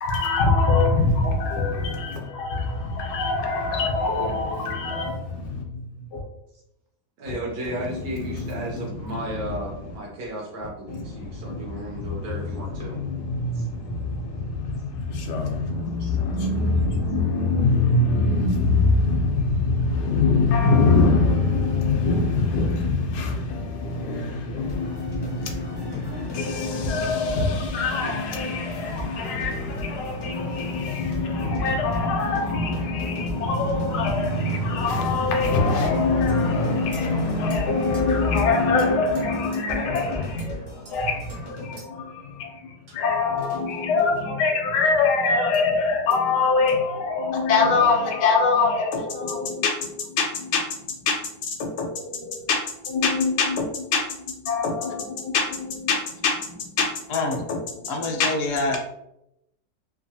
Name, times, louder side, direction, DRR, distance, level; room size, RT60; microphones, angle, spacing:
voice 1, 0.0-6.2 7.3-7.4 7.6-9.8 10.9-52.6 52.8-54.0 54.3-56.9 57.3-58.3, left 3 dB, 90° left, 1.2 m, -24 dB
voice 2, 7.2-13.0 13.5-13.7 16.0-16.2, right 1 dB, 75° right, 1.2 m, -34 dB
sound 1, 24.7-41.8, equal, 30° left, 0.5 m, -39 dB
sound 2, 36.3-36.4 36.9-37.0 37.5-37.6 37.9-38.0 38.4-38.5 38.8-38.9 39.1-39.2 39.5-39.6 39.9-40.0 40.4-40.5 40.8-41.4 41.8-41.9 42.9-44.2 45.5-45.6 46.1-46.2 46.7-46.8, right 2 dB, 50° right, 0.8 m, -48 dB
voice 3, 57.1-57.4 57.9-58.8, left 2 dB, 65° left, 0.9 m, -26 dB
3.0 x 2.3 x 2.7 m
omnidirectional pair, 1.7 m